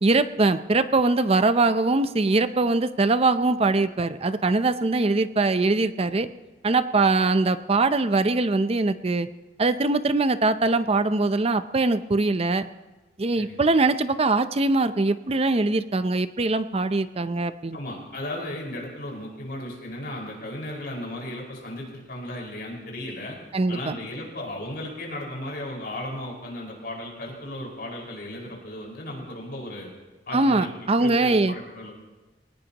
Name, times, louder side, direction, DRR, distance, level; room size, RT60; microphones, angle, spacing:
voice 1, 0.0-6.3 6.6-9.3 9.6-12.7 13.2-17.8 23.5-23.9 30.3-31.5, right 3 dB, 35° right, 12 dB, 0.6 m, -22 dB
voice 2, 17.7-23.4 23.7-29.9 30.3-30.7 31.0-31.9, left 1 dB, 60° left, -2 dB, 5.1 m, -35 dB
21.5 x 18.5 x 3.0 m, 1.2 s
head